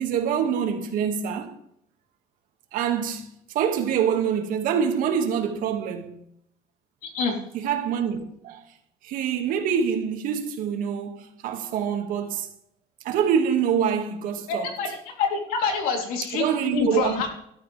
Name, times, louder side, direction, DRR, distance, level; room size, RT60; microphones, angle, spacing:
voice 1, 0.0-1.5 2.7-3.3 3.5-6.2 7.5-8.6 9.0-12.5 13.0-14.7 16.3-17.1, right 8 dB, 70° right, 2.1 m, -25 dB
voice 2, 7.0-7.4 14.5-17.3, left 5 dB, 75° left, 3.5 m, -26 dB
14.5 x 12.5 x 3.5 m
cardioid pair, 155°, 15 cm